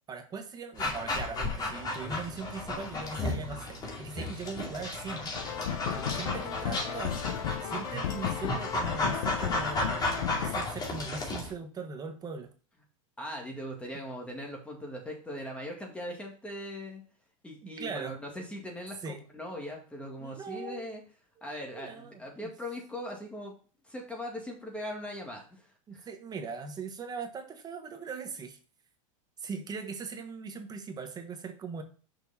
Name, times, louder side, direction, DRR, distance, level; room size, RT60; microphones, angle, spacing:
voice 1, 0.1-5.3 5.8-7.2 7.6-12.5 17.6-18.2 19.0-19.2 20.2-20.8 21.7-22.5 25.9-28.6 29.4-31.8, right 4 dB, 20° right, 5 dB, 1.2 m, -40 dB
Dog, 0.8-11.5, left 2 dB, 25° left, 2.3 m, -34 dB
sound 1, 5.3-10.6, left 10 dB, 85° left, 0.9 m, -35 dB
voice 2, 13.2-17.0 17.4-21.0 21.4-23.5 23.8-26.1, left 1 dB, 5° left, 1 dB, 2.0 m, -40 dB
6.2 x 5.2 x 4.1 m, 0.39 s
supercardioid pair, 130°, 17 cm